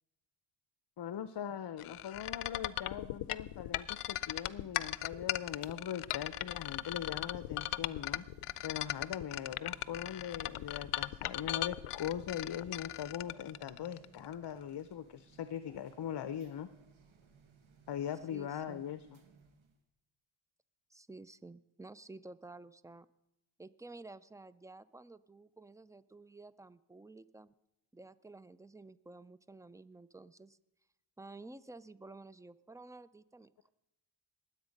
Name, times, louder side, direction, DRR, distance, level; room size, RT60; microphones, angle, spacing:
voice 1, 1.0-8.2 8.6-16.7 17.9-19.2, left 9 dB, 55° left, 12 dB, 0.7 m, -41 dB
sound 1, 1.8-14.3, left 14 dB, 90° left, 0.5 m, -38 dB
sound 2, 4.2-19.8, right 5 dB, 70° right, 1.7 m, -62 dB
voice 2, 18.3-18.8 20.9-23.1 23.6-27.5 27.9-30.6 31.2-33.5, right 2 dB, 5° right, 17 dB, 0.4 m, -52 dB
20.0 x 8.1 x 5.2 m, 0.88 s
cardioid pair, 70°, 50 cm